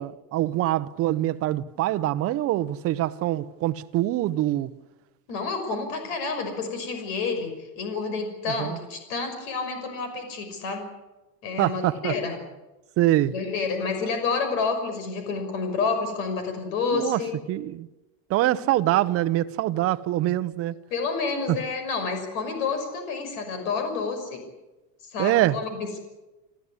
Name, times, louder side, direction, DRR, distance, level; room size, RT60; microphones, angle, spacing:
voice 1, 0.0-4.7 8.6-8.8 11.6-12.1 13.0-13.3 16.9-17.2 17.5-17.9 18.3-20.8 21.5-21.6 25.2-25.6, right 14 dB, 35° right, 0.8 m, -24 dB
voice 2, 5.3-10.9 11.4-12.4 13.3-17.3 20.9-24.4 25.0-26.1, left 4 dB, 80° left, 6.0 m, -29 dB
29.0 x 14.0 x 9.8 m
cardioid pair, 175°, 40 cm